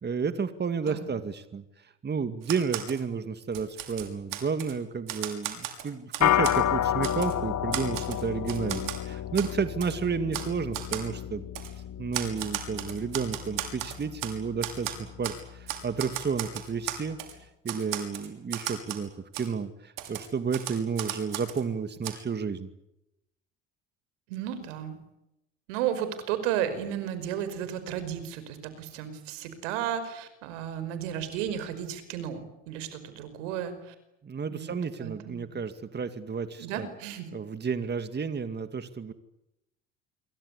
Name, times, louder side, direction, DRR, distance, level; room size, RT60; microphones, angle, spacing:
voice 1, 0.0-11.5 11.7-17.2 17.6-22.7 34.2-36.9 37.3-39.1, right 5 dB, 30° right, 10 dB, 2.2 m, -32 dB
Typewriter, 2.4-3.0 3.4-4.7 5.1-6.6 7.0-7.3 7.7-9.0 9.3-9.5 9.8-10.0 10.3-10.5 10.7-11.1 11.5-11.7 12.1-14.3 14.6-15.4 15.7-17.3 17.7-19.1 19.3-19.5 20.0-21.6 22.0-22.1, right 12 dB, 60° right, 6.2 m, -35 dB
sound 1, 6.2-15.7, left 11 dB, 50° left, 1.6 m, -31 dB
voice 2, 24.3-25.0 25.7-33.9 34.5-35.5 36.6-37.3, right 10 dB, 80° right, 11 dB, 5.3 m, -33 dB
28.0 x 24.0 x 8.4 m, 0.88 s
hypercardioid pair, 75°, 36 cm